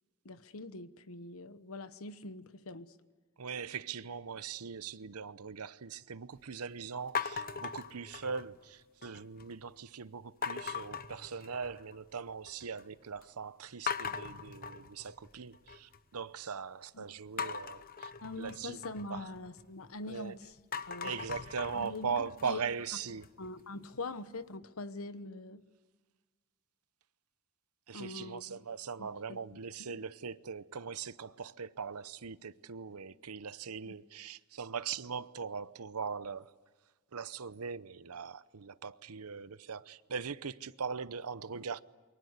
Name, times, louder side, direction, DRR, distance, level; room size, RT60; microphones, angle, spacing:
voice 1, 0.2-2.9 17.0-17.1 18.2-20.5 20.9-21.2 21.7-22.1 22.4-22.6 23.4-25.6 27.9-28.4 29.0-29.4 29.9-30.0 33.9-34.0, left 2 dB, 75° left, 1.2 m, -43 dB
voice 2, 3.4-19.3 20.0-20.4 21.0-23.3 27.9-36.5 37.1-41.8, right 6 dB, 90° right, 0.8 m, -40 dB
sound 1, 7.2-8.6 9.0-9.5 10.4-12.0 12.3-12.8 13.2-13.3 13.9-16.0 17.4-20.2 20.6-23.5, left 6 dB, 40° left, 1.0 m, -40 dB
28.5 x 23.5 x 8.2 m
head